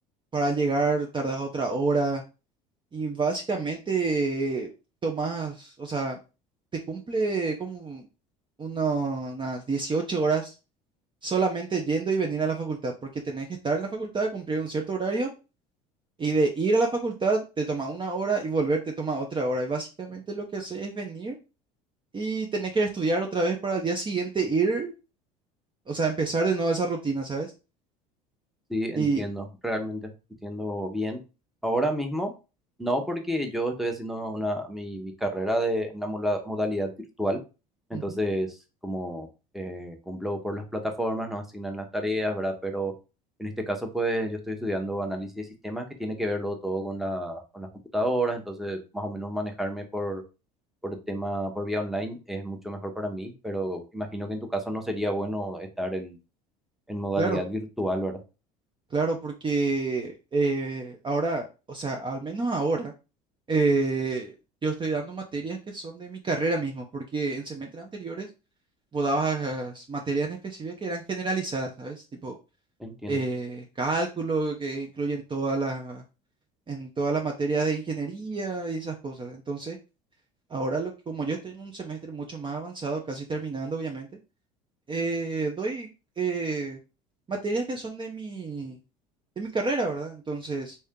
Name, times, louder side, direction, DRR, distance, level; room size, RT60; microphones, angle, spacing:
voice 1, 0.3-2.2 2.9-4.7 5.0-6.2 6.9-8.0 8.6-10.5 11.2-15.3 16.2-21.4 22.1-24.9 25.9-27.5 29.0-29.3 37.9-38.2 57.2-57.4 58.9-62.9 63.5-64.3 64.6-68.3 68.9-72.4 73.1-76.0 76.7-79.8 80.5-84.1 84.9-85.9 86.2-86.8 87.3-88.8 89.4-90.8, right 3 dB, 25° right, 2 dB, 0.7 m, -28 dB
voice 2, 28.7-30.1 30.4-31.2 31.6-32.3 32.8-36.9 37.2-37.4 37.9-38.6 38.8-39.3 39.5-42.9 43.4-47.7 47.9-50.2 50.8-56.2 56.9-58.1 72.8-73.2, equal, ahead, 3 dB, 1.0 m, -30 dB
3.2 x 2.8 x 3.6 m, 0.30 s
hypercardioid pair, 75°, 21 cm